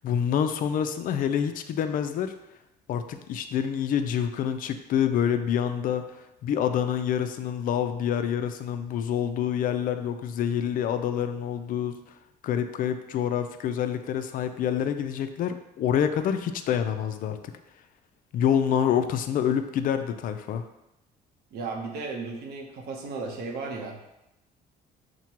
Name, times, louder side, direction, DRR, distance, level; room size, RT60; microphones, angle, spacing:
voice 1, 0.0-2.3 2.9-6.1 6.4-12.0 12.4-17.5 18.3-20.6, left 8 dB, 55° left, 8 dB, 0.4 m, -27 dB
voice 2, 21.5-24.0, right 4 dB, 75° right, 1 dB, 0.8 m, -35 dB
6.0 x 2.2 x 2.9 m, 0.92 s
cardioid pair, 110°, 17 cm